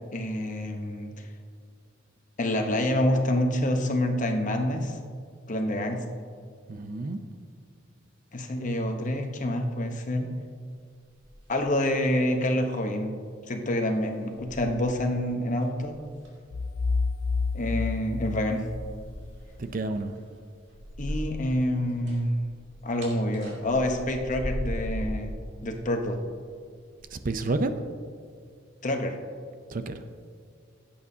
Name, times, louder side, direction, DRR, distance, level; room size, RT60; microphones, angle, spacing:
voice 1, 0.1-1.3 2.4-5.0 5.5-6.0 8.3-10.3 11.5-13.1 13.5-16.0 17.5-18.6 21.0-22.3 22.8-25.4 25.6-26.2 28.8-29.1, left 1 dB, 40° left, 4 dB, 1.0 m, -27 dB
voice 2, 6.7-7.2 19.6-20.2 27.1-27.7 29.7-30.0, right 2 dB, 45° right, 9 dB, 0.5 m, -30 dB
sound 1, 11.0-12.1 12.3-12.6 13.5-13.6 14.1-15.2 15.6-16.5 18.5-21.5 21.8-25.2 26.0-26.4 27.0-27.2, equal, 65° right, 2.6 m, -38 dB
sound 2, 16.5-19.3, left 4 dB, 75° left, 0.4 m, -29 dB
16.5 x 8.6 x 2.8 m, 2.1 s
head